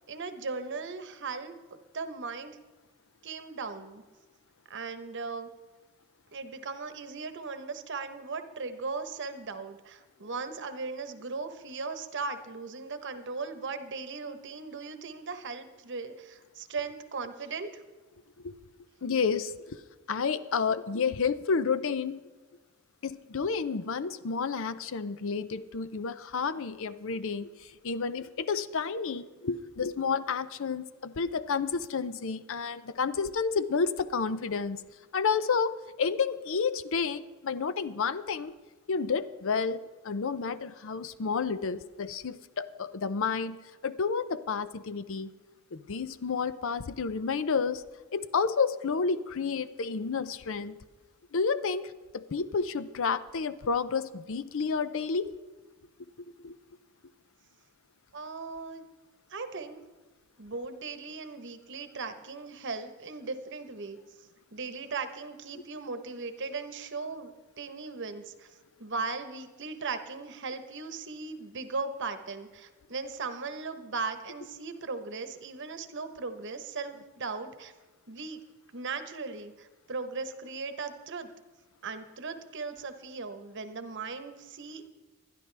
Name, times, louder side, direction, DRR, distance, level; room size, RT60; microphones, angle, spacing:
voice 1, 0.1-1.5 1.9-2.6 3.2-4.0 4.7-5.5 6.3-17.8 58.1-58.9 59.3-59.8 60.4-64.0 64.5-67.3 67.6-68.5 68.8-77.7 78.1-78.4 78.7-81.3 81.8-84.8, right 4 dB, 55° right, 9 dB, 1.0 m, -38 dB
voice 2, 19.0-19.8 20.1-22.2 23.0-34.8 35.1-38.5 38.9-43.6 43.8-45.3 45.7-47.8 48.1-50.8 51.3-55.3 56.4-56.5, left 5 dB, 60° left, 14 dB, 0.6 m, -30 dB
20.5 x 12.5 x 3.4 m, 1.3 s
head